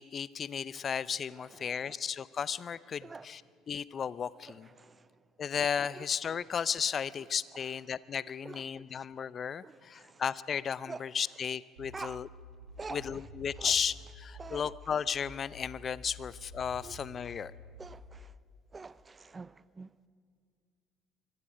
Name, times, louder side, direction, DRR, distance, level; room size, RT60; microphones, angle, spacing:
voice 1, 0.0-3.4 3.7-4.7 5.4-12.3 12.9-13.9 14.2-17.5, left 7 dB, 40° left, 0.6 m, -34 dB
voice 2, 1.4-2.0 3.0-3.3 4.5-5.3 5.9-6.1 7.2-7.8 8.4-9.1 9.6-10.2 10.9-11.0 11.9-12.2 12.8-13.3 13.5-13.8 14.4-14.8 16.8-17.0 17.2-17.4 17.8-18.4 18.7-20.0, right 4 dB, 25° right, 0.5 m, -47 dB
sound 1, 11.8-14.8 15.2-18.2, left 1 dB, 80° right, 4.2 m, -50 dB
25.0 x 23.5 x 5.1 m
hypercardioid pair, 60°, 0 cm